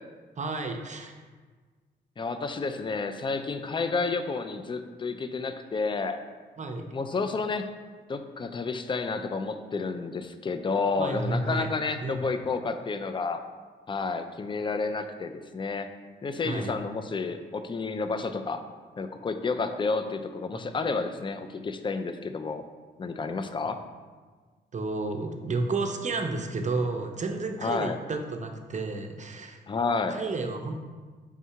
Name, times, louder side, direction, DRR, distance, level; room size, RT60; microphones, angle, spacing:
voice 1, 0.4-1.1 6.6-6.9 11.0-11.7 12.0-12.2 16.4-16.7 20.5-20.6 24.7-29.6 30.1-30.7, right 3 dB, 35° right, 5 dB, 0.6 m, -31 dB
voice 2, 2.2-6.2 6.9-7.7 8.1-13.4 13.9-15.9 16.2-18.6 19.0-22.6 23.0-23.8 27.6-28.0 29.7-30.2, left 4 dB, 25° left, 8 dB, 0.4 m, -30 dB
3.6 x 2.7 x 4.4 m, 1.4 s
supercardioid pair, 55°, 20 cm